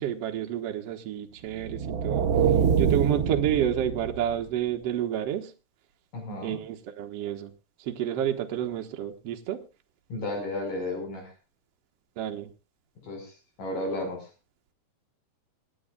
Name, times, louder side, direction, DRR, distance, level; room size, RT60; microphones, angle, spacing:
voice 1, 0.0-2.3 2.8-5.5 6.4-7.5 7.8-9.6 12.2-12.5, right 10 dB, 60° right, 4 dB, 1.9 m, -29 dB
sound 1, 1.5-4.5, right 7 dB, 80° right, 1.1 m, -25 dB
voice 2, 6.1-6.6 10.1-11.3 13.0-14.3, left 2 dB, 70° left, 3 dB, 6.7 m, -33 dB
26.5 x 10.0 x 2.3 m, 0.30 s
omnidirectional pair, 3.9 m